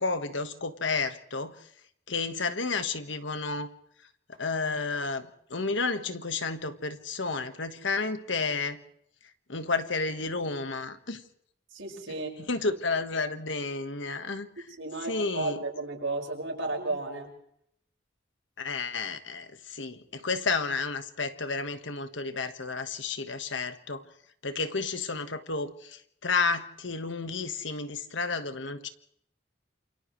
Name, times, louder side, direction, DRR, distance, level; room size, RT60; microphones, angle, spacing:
voice 1, 0.0-1.5 2.1-3.7 4.4-8.8 9.5-11.2 12.1-12.2 12.5-14.7 15.1-15.6 18.6-24.0 24.4-28.9, left 4 dB, 70° left, 9 dB, 1.5 m, -31 dB
voice 2, 11.7-12.3 14.8-17.3, right 2 dB, 75° right, 0 dB, 5.9 m, -33 dB
28.5 x 28.0 x 3.3 m, 0.69 s
head